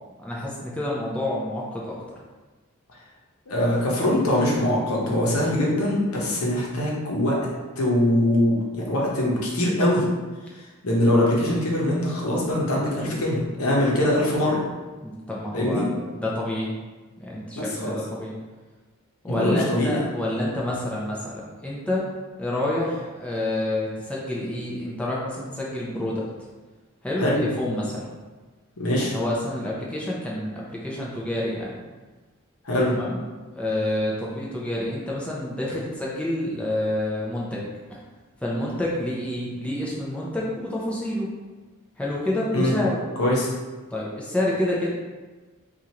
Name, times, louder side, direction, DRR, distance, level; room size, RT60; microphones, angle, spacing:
voice 1, 0.2-2.2 15.0-16.7 17.2-18.3 19.2-22.1 22.4-26.2 27.0-28.1 29.0-31.8 32.9-37.7 38.4-41.3 42.0-43.0 43.9-44.9, left 1 dB, 5° left, -5 dB, 0.4 m, -28 dB
voice 2, 3.5-7.4 7.8-10.1 10.8-14.6 15.5-15.9 17.5-17.9 19.3-20.0 27.2-27.4 28.8-29.1 32.6-33.0 42.5-42.7 43.2-43.5, left 1 dB, 65° left, -4 dB, 0.9 m, -22 dB
4.4 x 2.5 x 2.8 m, 1.3 s
head